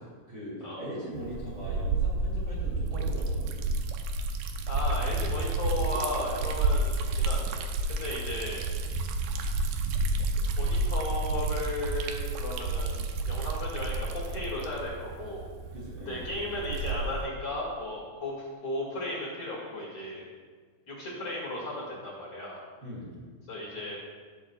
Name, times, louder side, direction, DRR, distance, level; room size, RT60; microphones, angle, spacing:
voice 1, 0.3-3.5 15.7-16.3 22.8-23.1, equal, 30° right, -7 dB, 3.1 m, -40 dB
Liquid, 1.2-17.3, right 2 dB, 90° right, 2.6 m, -30 dB
voice 2, 4.7-7.6 7.9-8.6 10.6-15.5 16.1-20.2 20.9-22.6 23.5-24.0, left 1 dB, 45° left, -5 dB, 3.0 m, -35 dB
19.5 x 8.1 x 2.4 m, 1.5 s
omnidirectional pair, 4.0 m